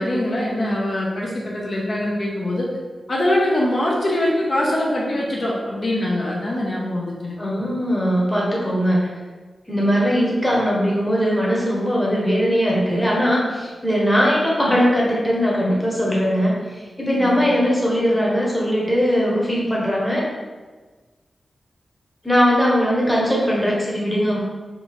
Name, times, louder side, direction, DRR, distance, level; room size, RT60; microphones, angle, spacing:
voice 1, 0.0-2.7 3.1-7.4 17.2-17.5, left 1 dB, 50° left, -3 dB, 0.8 m, -23 dB
voice 2, 7.4-9.1 9.7-20.2 22.2-24.4, equal, 5° left, -5 dB, 1.0 m, -20 dB
3.6 x 2.7 x 4.6 m, 1.3 s
wide cardioid pair, 125°, 0 cm